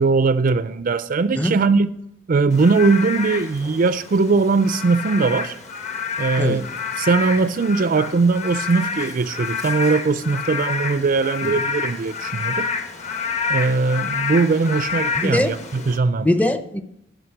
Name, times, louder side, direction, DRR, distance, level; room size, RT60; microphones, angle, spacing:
voice 1, 0.0-1.9 2.3-5.5 6.2-6.7 7.0-12.7 13.5-16.3, right 4 dB, 45° right, 0.4 m, -20 dB
Frog / Rain, 2.5-16.0, left 5 dB, 40° left, 1.0 m, -28 dB
voice 2, 15.2-15.5 16.2-16.8, left 1 dB, 10° left, 0.6 m, -21 dB
11.5 x 5.1 x 6.5 m
head